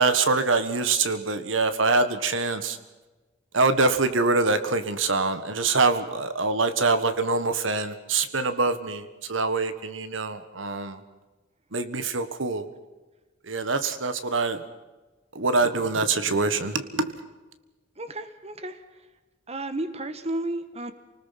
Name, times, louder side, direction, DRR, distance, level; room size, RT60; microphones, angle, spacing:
voice 1, 0.0-2.8 3.5-11.0 11.7-12.7 13.4-14.6 15.4-17.1, right 3 dB, 65° right, 11 dB, 1.6 m, -24 dB
voice 2, 18.0-18.8 19.5-20.9, right 1 dB, 30° right, 10 dB, 1.5 m, -32 dB
28.5 x 19.5 x 5.9 m, 1.2 s
head